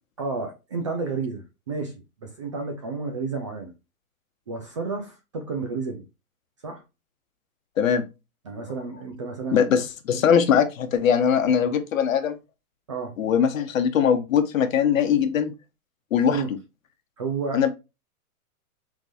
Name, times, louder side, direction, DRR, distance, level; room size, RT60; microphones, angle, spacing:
voice 1, 0.2-3.7 4.5-6.0 6.6-6.8 8.4-9.6 12.9-13.2 16.3-16.5 17.2-17.6, right 4 dB, 20° right, 0.4 m, -31 dB
voice 2, 9.5-12.4 13.2-15.5 16.1-16.4 17.5-17.7, left 7 dB, 60° left, 1.0 m, -21 dB
4.9 x 3.8 x 2.5 m
hypercardioid pair, 150°, 45 cm